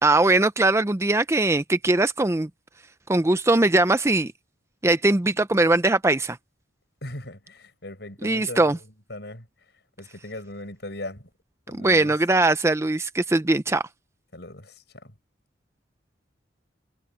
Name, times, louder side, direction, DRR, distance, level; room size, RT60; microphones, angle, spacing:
voice 1, 0.0-2.5 3.1-4.3 4.8-6.4 8.2-8.8 11.7-13.8, right 2 dB, 15° right, 0.5 m, -21 dB
voice 2, 7.0-8.8 9.1-9.4 10.0-11.3 11.7-12.1 14.3-14.7 15.0-15.1, left 1 dB, 65° left, 6.4 m, -38 dB
head